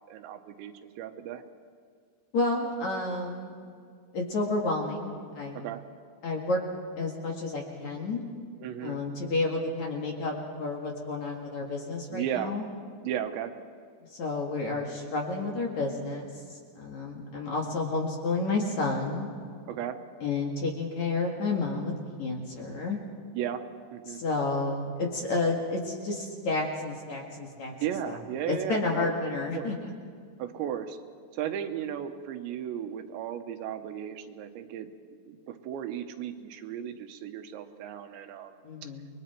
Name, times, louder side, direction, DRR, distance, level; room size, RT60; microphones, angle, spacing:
voice 1, 0.1-1.4 5.5-5.8 8.6-9.0 12.1-12.5 13.0-13.5 19.7-20.0 23.3-23.6 23.9-24.2 27.8-29.7 30.4-31.0 31.3-34.9 35.3-38.5 38.8-38.9, right 10 dB, 85° right, 7 dB, 3.2 m, -35 dB
voice 2, 2.3-3.5 4.1-5.7 6.2-6.6 7.0-8.2 8.8-12.7 14.1-19.3 20.2-21.9 22.2-23.0 24.1-27.7 28.1-28.2 28.5-29.7 38.6-39.1, left 3 dB, 50° left, -1 dB, 2.7 m, -30 dB
29.5 x 21.5 x 4.5 m, 2.1 s
omnidirectional pair, 5.1 m